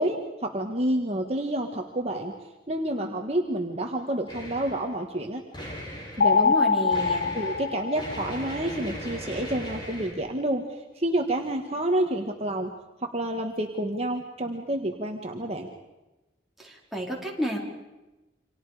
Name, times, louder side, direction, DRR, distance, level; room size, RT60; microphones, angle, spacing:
voice 1, 0.0-2.3 2.7-5.4 6.2-6.5 7.3-10.6 10.9-12.7 13.0-15.7, right 1 dB, 35° right, 3 dB, 1.6 m, -29 dB
sound 1, 4.3-4.9 5.5-6.4 6.9-10.1, equal, 25° left, 7.1 m, -38 dB
sound 2, 6.2-8.7, left 5 dB, 65° left, 0.8 m, -24 dB
voice 2, 6.4-7.3 16.6-17.6, equal, ahead, -3 dB, 4.4 m, -31 dB
29.5 x 26.0 x 5.0 m, 1.1 s
head